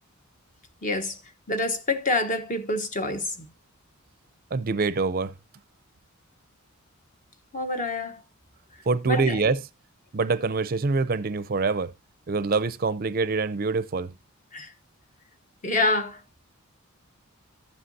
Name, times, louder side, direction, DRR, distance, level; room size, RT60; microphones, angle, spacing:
voice 1, 0.8-1.2 1.5-3.3 7.5-8.2 9.1-9.4 14.5-14.7 15.6-16.2, left 2 dB, 35° left, 1.1 m, -26 dB
voice 2, 4.5-5.3 8.9-9.6 10.1-11.9 12.3-14.1, right 4 dB, 40° right, 0.5 m, -25 dB
13.5 x 7.8 x 2.7 m
head